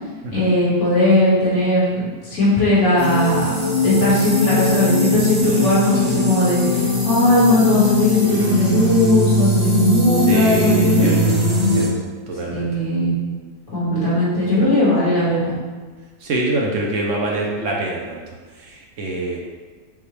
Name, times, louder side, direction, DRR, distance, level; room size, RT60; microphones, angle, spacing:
voice 1, 0.3-3.5 3.8-11.1 12.5-13.1 13.7-15.5, left 1 dB, 50° left, -9 dB, 2.0 m, -18 dB
sound 1, 3.0-11.9, equal, 30° right, 0.7 m, -20 dB
voice 2, 10.3-11.4 11.7-12.7 16.2-18.2 18.7-19.4, right 2 dB, 65° right, -1 dB, 0.8 m, -25 dB
5.4 x 2.3 x 3.2 m, 1.4 s
omnidirectional pair, 1.7 m